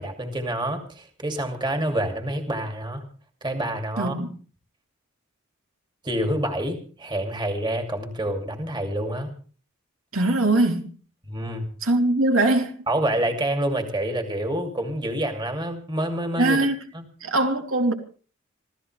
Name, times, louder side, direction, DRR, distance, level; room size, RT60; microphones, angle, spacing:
voice 1, 0.0-3.0 3.4-4.2 6.0-9.3 11.2-11.7 12.9-16.6 16.9-17.0, right 1 dB, 20° right, 2.7 m, -27 dB
voice 2, 4.0-4.3 10.1-10.9 11.8-12.8 16.4-16.8 17.2-17.9, right 2 dB, 75° right, 3.1 m, -21 dB
26.5 x 16.0 x 3.4 m
head